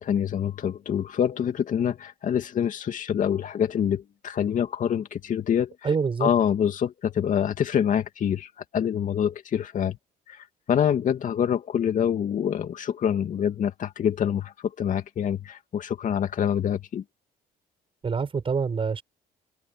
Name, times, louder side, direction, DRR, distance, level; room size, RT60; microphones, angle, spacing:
voice 1, 0.0-5.8 6.2-10.0 10.3-17.0, left 9 dB, 50° left, 2.5 m, -26 dB
voice 2, 5.8-6.3 18.0-19.0, right 5 dB, 30° right, 7.1 m, -26 dB
open air
cardioid pair, 110°, 17 cm